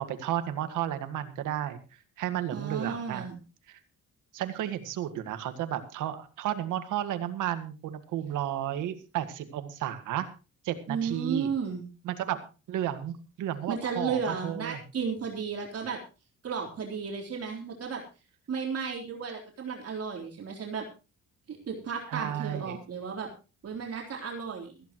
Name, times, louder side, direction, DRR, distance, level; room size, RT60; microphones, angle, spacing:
voice 1, 0.0-1.8 2.2-3.3 3.7-3.8 4.3-10.3 10.6-11.5 12.0-12.4 12.7-14.8 22.1-22.8, right 11 dB, 90° right, 9 dB, 1.8 m, -33 dB
voice 2, 2.5-3.4 10.9-11.8 13.7-16.0 16.4-18.0 18.5-20.9 21.5-23.3 23.6-24.7, right 6 dB, 50° right, 0 dB, 3.8 m, -33 dB
16.5 x 15.0 x 3.1 m, 0.32 s
cardioid pair, 90°, 30 cm